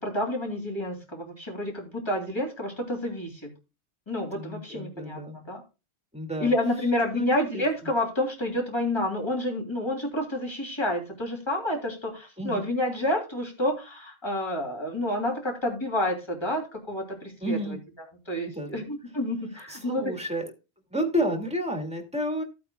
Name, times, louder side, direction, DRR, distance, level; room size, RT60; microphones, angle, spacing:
voice 1, 0.0-3.5 4.1-5.6 6.4-17.8 18.3-20.1, left 1 dB, 25° left, 1 dB, 3.1 m, -29 dB
voice 2, 4.3-5.4 6.1-6.5 7.1-7.6 12.4-12.7 17.4-17.8 18.5-18.8 19.7-20.5 20.9-22.4, equal, 5° right, 3 dB, 2.1 m, -31 dB
15.0 x 8.6 x 2.3 m, 0.29 s
omnidirectional pair, 1.1 m